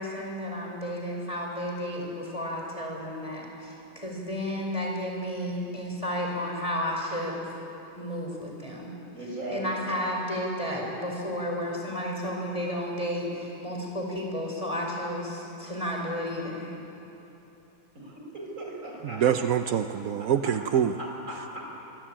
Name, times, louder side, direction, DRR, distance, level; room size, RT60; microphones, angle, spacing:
voice 1, 0.0-7.4 7.9-8.9 9.5-16.7, equal, 15° left, -1 dB, 5.0 m, -32 dB
voice 2, 9.1-9.9 17.9-19.5 19.9-20.5 21.0-21.6, right 1 dB, 35° right, -1 dB, 6.4 m, -38 dB
voice 3, 19.0-21.0 21.3-21.6, right 9 dB, 70° right, 8 dB, 0.8 m, -26 dB
26.5 x 23.0 x 8.9 m, 3.0 s
omnidirectional pair, 2.4 m